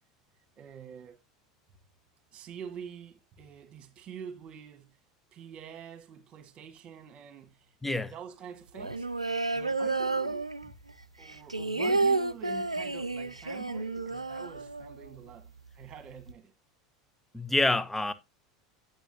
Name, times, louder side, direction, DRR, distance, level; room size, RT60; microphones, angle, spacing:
voice 1, 0.6-1.2 2.3-5.0 5.3-7.7 8.1-9.1 9.5-10.7 11.2-16.5, right 8 dB, 35° right, 1.6 m, -46 dB
voice 2, 7.8-8.1 17.3-18.1, left 2 dB, 5° left, 0.6 m, -27 dB
sound 1, 8.7-10.9 11.2-15.2 15.5-15.6 15.8-16.3, right 3 dB, 90° right, 0.4 m, -31 dB
9.1 x 8.0 x 2.7 m
figure-of-eight pair, 80°, 3 cm